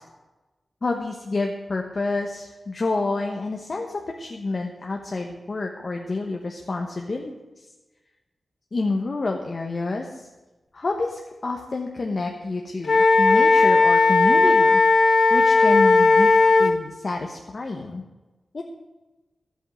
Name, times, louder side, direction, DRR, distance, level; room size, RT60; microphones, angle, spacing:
voice 1, 0.8-7.3 8.7-10.2 10.7-14.8 15.3-16.3 16.6-18.0 18.5-18.6, left 3 dB, 45° left, 1 dB, 1.3 m, -28 dB
Wind instrument woodwind instrument, 12.8-16.7, left 3 dB, 65° left, 1.3 m, -16 dB
12.5 x 8.3 x 7.8 m, 1.1 s
wide cardioid pair, 125°, 0 cm